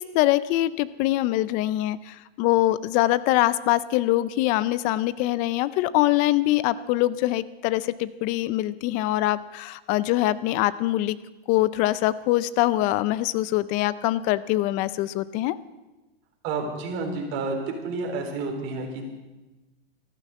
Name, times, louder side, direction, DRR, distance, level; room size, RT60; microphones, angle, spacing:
voice 1, 0.0-11.2 11.5-15.6, left 16 dB, 25° left, 18 dB, 0.4 m, -23 dB
voice 2, 16.4-17.6 17.8-19.1, right 3 dB, 40° right, 2 dB, 3.9 m, -30 dB
13.5 x 12.0 x 8.1 m, 1.1 s
hypercardioid pair, 140°, 31 cm